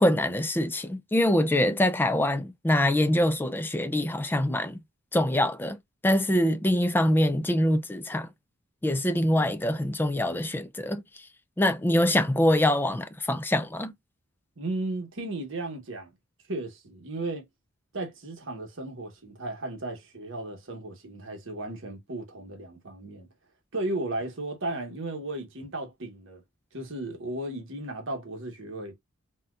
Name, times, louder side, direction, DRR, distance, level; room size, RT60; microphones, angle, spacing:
voice 1, 0.0-4.8 5.1-5.8 6.0-8.3 8.8-11.0 11.6-13.9, left 1 dB, 10° left, 0.3 m, -24 dB
voice 2, 14.6-16.1 16.5-17.5 17.9-23.3 23.7-26.4 26.7-28.9, right 2 dB, 60° right, 1.1 m, -35 dB
4.2 x 2.3 x 2.3 m
head